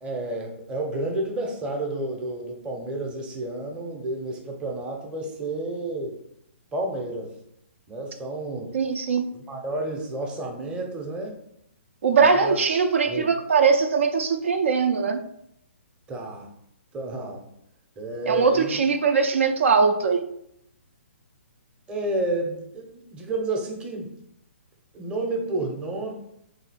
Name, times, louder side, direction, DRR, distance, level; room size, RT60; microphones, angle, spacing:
voice 1, 0.0-6.2 6.7-7.3 7.9-8.7 9.5-11.4 12.1-12.6 13.1-13.3 16.1-16.5 16.9-17.5 18.0-18.8 21.9-24.1 24.9-26.1, right 2 dB, 15° right, 1 dB, 0.7 m, -30 dB
voice 2, 8.7-9.3 12.0-15.2 18.3-20.2, right 5 dB, 70° right, 6 dB, 0.5 m, -21 dB
3.6 x 2.7 x 4.1 m, 0.75 s
hypercardioid pair, 145°, 7 cm